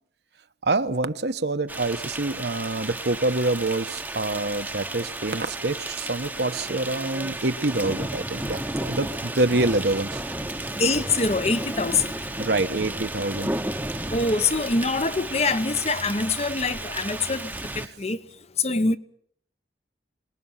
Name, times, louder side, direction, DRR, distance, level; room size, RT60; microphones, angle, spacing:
voice 1, 0.6-10.2 12.4-13.5, right 2 dB, 65° right, 1.2 m, -26 dB
sound 1, 1.7-17.9, right 1 dB, 10° right, 1.1 m, -33 dB
voice 2, 10.7-12.3 14.1-19.0, left 3 dB, 35° left, 1.1 m, -25 dB
26.0 x 20.5 x 5.7 m
head